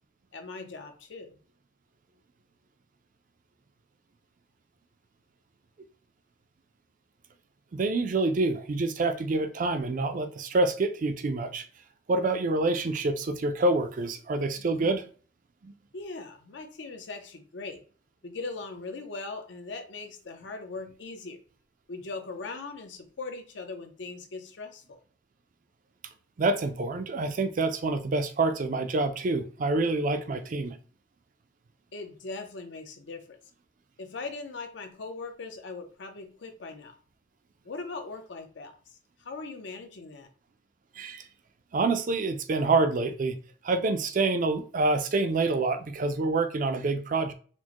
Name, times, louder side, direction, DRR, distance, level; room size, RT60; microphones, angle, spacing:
voice 1, 0.3-1.4 15.9-17.8 18.2-21.4 21.9-25.0 31.9-33.4 34.0-36.9 37.6-40.3, left 3 dB, 75° left, 0.6 m, -40 dB
voice 2, 7.7-11.6 12.1-15.0 15.6-15.7 26.4-30.8 41.0-41.2 41.7-43.3 43.6-47.3, right 3 dB, 45° right, 0.4 m, -27 dB
4.3 x 2.1 x 2.9 m
head